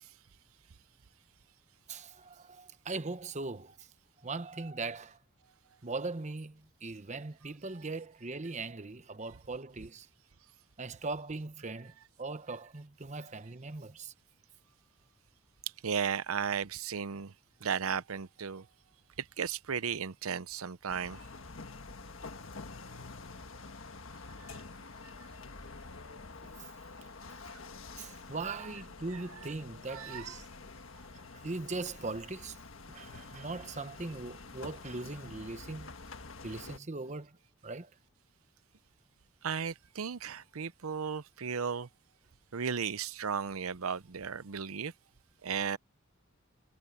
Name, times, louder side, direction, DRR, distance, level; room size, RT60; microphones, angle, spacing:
voice 1, 1.9-3.9 4.2-5.2 5.8-10.1 10.8-11.9 12.2-14.1 26.4-26.7 28.0-30.5 31.3-32.6 32.9-36.0 36.4-37.4 37.6-37.9, right 3 dB, 35° right, 0.9 m, -40 dB
voice 2, 15.8-17.3 17.6-18.7 19.2-21.2 24.4-24.6 29.1-29.2 29.9-30.3 39.4-41.9 42.5-44.9 45.4-45.8, right 6 dB, 85° right, 0.7 m, -35 dB
sound 1, 20.9-36.8, left 3 dB, 70° left, 1.5 m, -48 dB
head